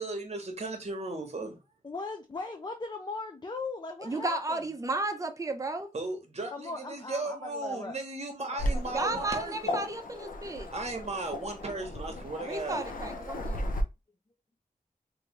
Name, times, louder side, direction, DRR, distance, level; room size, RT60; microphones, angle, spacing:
voice 1, 0.0-1.6 5.9-9.8 10.7-12.8, right 2 dB, 50° right, 1.0 m, -36 dB
voice 2, 1.8-4.6 6.5-8.0 8.4-8.5 8.9-9.3, left 3 dB, 30° left, 0.4 m, -39 dB
voice 3, 4.0-5.9 8.9-10.7 12.4-13.5, right 2 dB, 25° right, 0.6 m, -33 dB
Waves surf, 8.6-13.8, left 1 dB, 75° left, 0.6 m, -36 dB
3.1 x 2.6 x 3.1 m
wide cardioid pair, 60°, 14 cm